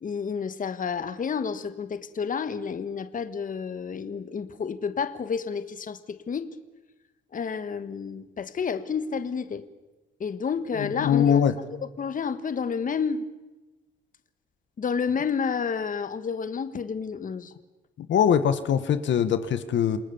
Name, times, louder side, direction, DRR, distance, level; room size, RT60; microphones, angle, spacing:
voice 1, 0.0-6.5 7.3-9.6 10.2-11.4 12.0-13.2 14.8-17.5, left 6 dB, 40° left, 11 dB, 1.5 m, -30 dB
voice 2, 10.8-11.6 18.0-20.0, left 8 dB, 70° left, 11 dB, 1.5 m, -22 dB
28.5 x 19.5 x 7.2 m, 1.1 s
cardioid pair, 90°, 20 cm